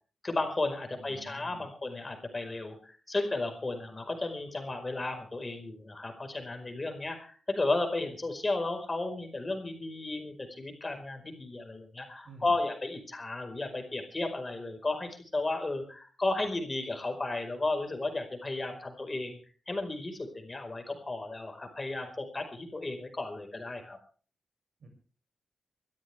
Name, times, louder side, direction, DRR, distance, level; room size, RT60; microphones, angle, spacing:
voice 1, 0.2-19.4 19.7-24.0, left 2 dB, 25° left, 5 dB, 4.9 m, -34 dB
voice 2, 0.9-1.6 12.2-12.5 24.8-24.9, right 2 dB, 70° right, 4 dB, 6.8 m, -50 dB
24.0 x 13.5 x 3.5 m, 0.39 s
cardioid pair, 90°, 0 cm